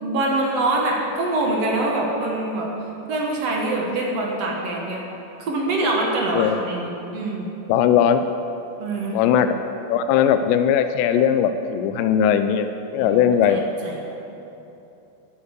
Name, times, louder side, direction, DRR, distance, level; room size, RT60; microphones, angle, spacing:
voice 1, 0.0-2.7 3.1-5.0 5.4-7.5 8.8-9.2 13.0-13.2 13.5-14.0, right 2 dB, 60° right, -1 dB, 1.7 m, -24 dB
voice 2, 7.7-8.3 9.1-9.6 9.9-12.7 12.9-13.6, left 9 dB, 85° left, 8 dB, 2.8 m, -19 dB
12.0 x 9.4 x 8.2 m, 2.9 s
omnidirectional pair, 4.9 m